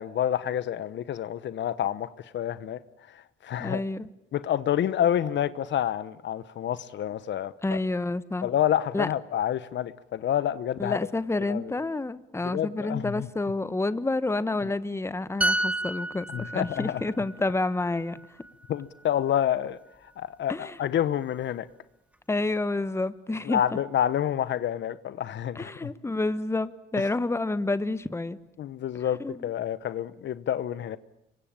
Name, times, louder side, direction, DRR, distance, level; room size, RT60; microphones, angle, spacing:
voice 1, 0.0-2.8 3.1-3.8 4.3-7.8 8.4-11.0 11.5-11.7 12.4-13.3 16.3-17.0 18.7-19.8 20.2-21.7 23.4-25.9 28.6-31.0, left 10 dB, 65° left, 1.0 m, -28 dB
voice 2, 3.6-4.1 7.6-8.5 8.9-9.1 10.8-18.2 20.5-20.8 22.3-23.6 25.5-28.4 29.2-29.5, left 2 dB, 15° left, 1.1 m, -29 dB
sound 1, 15.4-19.0 19.3-19.6, right 1 dB, 5° right, 1.1 m, -31 dB
26.5 x 23.0 x 9.0 m
cardioid pair, 90°, 20 cm